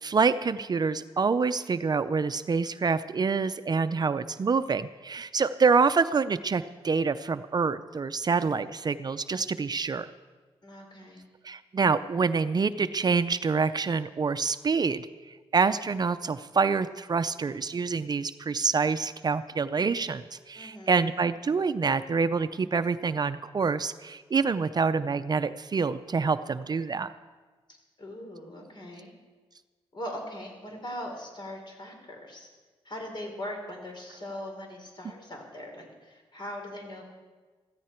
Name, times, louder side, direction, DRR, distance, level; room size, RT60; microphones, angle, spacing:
voice 1, 0.0-10.1 11.4-15.1 15.5-27.1, right 5 dB, 40° right, 12 dB, 0.5 m, -26 dB
voice 2, 10.6-11.2 20.5-21.0 28.0-29.1 29.9-32.5 32.8-37.0, left 1 dB, 50° left, 2 dB, 3.9 m, -40 dB
15.0 x 14.5 x 4.5 m, 1.4 s
cardioid pair, 70°, 10 cm